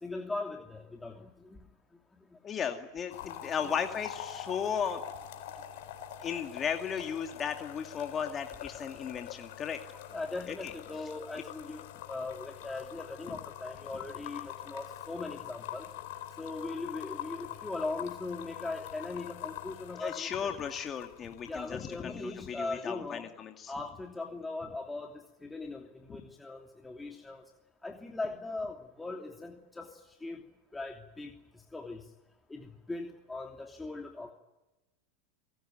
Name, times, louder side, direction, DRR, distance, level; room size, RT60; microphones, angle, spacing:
voice 1, 0.0-1.6 2.3-2.4 3.6-3.7 10.1-11.8 12.1-15.8 16.4-20.5 21.5-23.3 23.7-27.4 27.8-29.9 30.2-30.4 30.7-31.3 31.7-32.0 32.5-34.3, left 3 dB, 10° left, 2 dB, 2.8 m, -39 dB
voice 2, 2.4-5.0 6.2-9.8 10.5-10.6 20.0-23.7, left 7 dB, 30° left, 4 dB, 2.3 m, -35 dB
sound 1, 3.1-22.1 22.3-22.7, left 11 dB, 70° left, 3.7 m, -44 dB
27.0 x 19.0 x 9.4 m, 1.0 s
hypercardioid pair, 100°, 0 cm